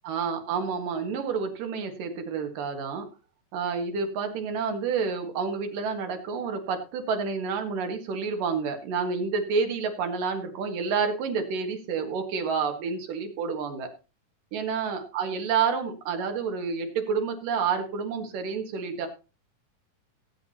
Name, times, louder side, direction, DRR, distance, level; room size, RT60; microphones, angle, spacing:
voice 1, 0.0-3.1 3.5-13.9 14.5-19.1, right 5 dB, 90° right, 5 dB, 3.3 m, -29 dB
18.0 x 8.7 x 2.8 m, 0.31 s
omnidirectional pair, 3.7 m